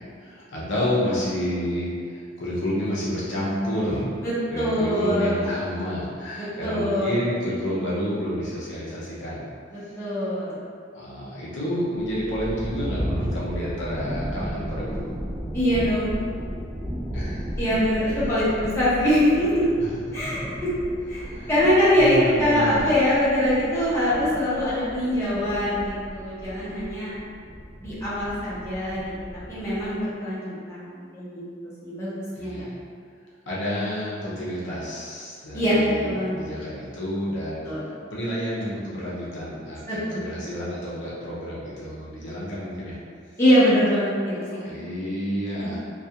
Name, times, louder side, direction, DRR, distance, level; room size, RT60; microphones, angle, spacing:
voice 1, 0.0-4.2 4.5-9.5 10.9-15.1 17.1-17.6 18.0-18.3 19.8-20.3 21.2-21.6 22.0-22.9 32.3-32.8 33.5-43.0 44.3-45.8, equal, 70° left, -8 dB, 0.6 m, -30 dB
voice 2, 4.2-5.3 6.6-7.2 10.0-10.6 15.5-16.1 17.6-19.7 20.1-20.7 21.1-27.1 27.8-29.1 29.5-31.4 31.8-32.7 35.5-36.3 37.7-37.8 39.9-40.5 43.4-44.3, equal, 15° left, -12 dB, 0.8 m, -23 dB
sound 1, 12.0-30.0, equal, 20° right, 0.3 m, -34 dB
2.3 x 2.3 x 2.7 m, 2.2 s
head